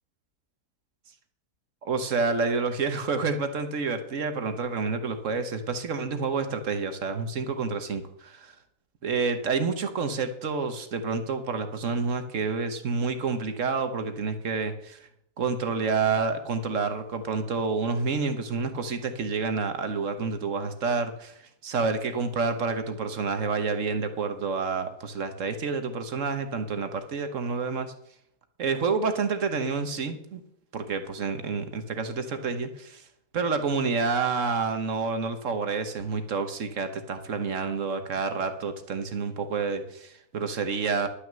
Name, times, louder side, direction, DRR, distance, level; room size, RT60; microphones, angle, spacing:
voice 1, 1.8-8.5 9.0-15.0 15.4-21.3 21.6-27.9 28.6-30.4 30.7-33.0 33.3-41.1, right 4 dB, 55° right, 8 dB, 1.4 m, -29 dB
11.5 x 6.3 x 7.5 m, 0.74 s
omnidirectional pair, 1.6 m